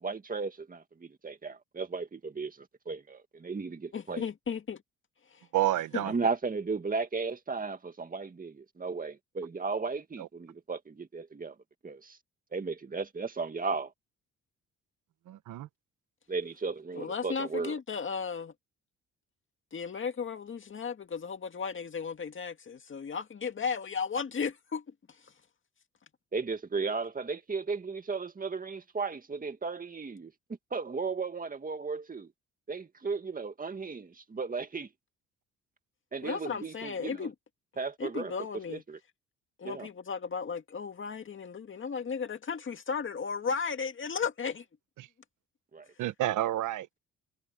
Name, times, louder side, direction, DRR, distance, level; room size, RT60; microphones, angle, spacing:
voice 1, 0.0-4.2 6.0-11.5 11.8-12.2 12.5-13.9 16.3-17.8 26.3-30.3 30.7-32.3 32.7-34.9 36.1-37.3 37.8-38.3 38.7-39.0 39.6-39.9 45.7-45.9, right 4 dB, 30° right, 2.1 m, -35 dB
voice 2, 3.9-4.8 5.3-5.5 5.9-6.0 17.0-18.5 19.7-25.3 36.2-37.3 38.0-38.8 39.6-44.7, left 6 dB, 40° left, 2.1 m, -35 dB
voice 3, 5.5-6.1 10.2-10.3 15.3-15.7 45.0-45.1 46.0-46.9, right 14 dB, 85° right, 1.3 m, -29 dB
cardioid pair, 90°, 30 cm